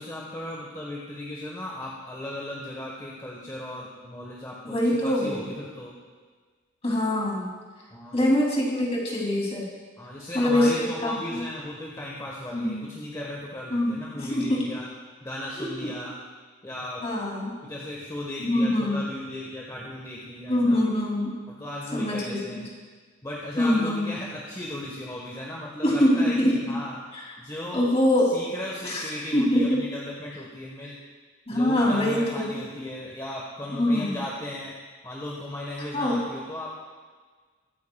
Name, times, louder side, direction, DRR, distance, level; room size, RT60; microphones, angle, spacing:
voice 1, 0.0-6.0 7.9-8.3 10.0-14.9 15.2-16.2 16.6-17.1 17.6-20.8 21.5-22.7 23.2-27.0 27.4-27.9 28.2-31.0 31.5-34.7 35.0-36.7, left 1 dB, 15° left, -4 dB, 1.3 m, -36 dB
voice 2, 4.6-5.4 6.8-7.5 8.1-9.6 10.3-11.4 12.5-12.8 13.7-14.6 15.6-15.9 17.0-17.5 18.4-19.0 20.5-21.3 21.9-22.6 23.6-24.1 25.8-26.6 27.1-27.2 27.7-28.3 28.8-29.1 29.3-29.8 31.5-32.6 33.8-34.2 35.9-36.2, left 1 dB, 35° left, -3 dB, 2.9 m, -24 dB
23.0 x 9.5 x 2.3 m, 1.5 s
head